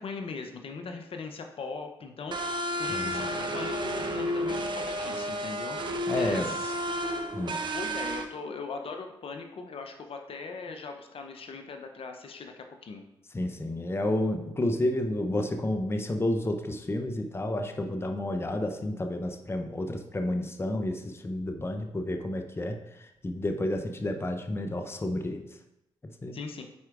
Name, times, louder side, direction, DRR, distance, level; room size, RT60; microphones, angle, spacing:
voice 1, 0.0-6.7 7.7-13.0 26.3-26.6, left 4 dB, 55° left, 5 dB, 0.7 m, -40 dB
sound 1, 2.3-8.2, equal, 45° right, 0.8 m, -31 dB
voice 2, 2.9-3.3 6.1-6.5 7.3-7.6 13.3-25.5 26.0-26.4, left 1 dB, 20° left, 6 dB, 0.7 m, -31 dB
9.5 x 4.5 x 2.5 m, 0.88 s
supercardioid pair, 45°, 11 cm